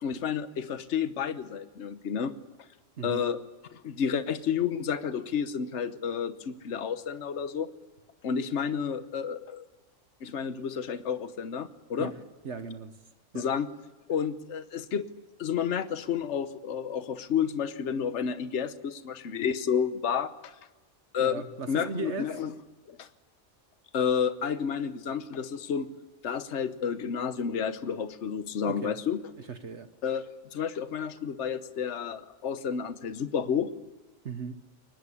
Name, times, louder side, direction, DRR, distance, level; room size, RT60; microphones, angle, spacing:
voice 1, 0.0-2.3 3.0-3.4 3.7-7.7 8.2-9.6 10.2-12.1 13.3-13.7 14.1-15.1 15.4-20.5 21.1-21.4 21.7-22.5 22.9-23.1 23.9-25.9 26.2-29.2 30.0-33.7, left 7 dB, 65° left, 1.3 m, -30 dB
voice 2, 12.4-12.9 13.3-13.4 21.2-22.3 28.6-28.9 29.5-29.9 34.2-34.6, right 4 dB, 60° right, 1.3 m, -37 dB
23.5 x 20.0 x 9.9 m
omnidirectional pair, 1.3 m